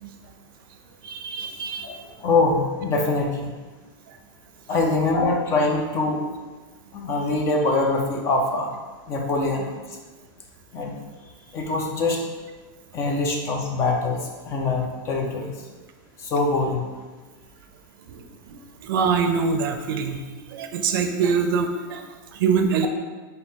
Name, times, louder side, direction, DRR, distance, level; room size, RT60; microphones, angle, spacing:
voice 1, 1.0-1.9 18.1-20.2 20.5-22.9, right 5 dB, 70° right, 6 dB, 0.5 m, -24 dB
voice 2, 1.8-3.5 4.7-6.2 6.9-8.8 9.1-9.7 10.7-10.9 11.5-12.2 12.9-14.2 14.4-15.5 16.2-16.8, left 3 dB, 25° left, 1 dB, 0.5 m, -23 dB
4.1 x 2.7 x 3.6 m, 1.3 s
supercardioid pair, 165°, 12 cm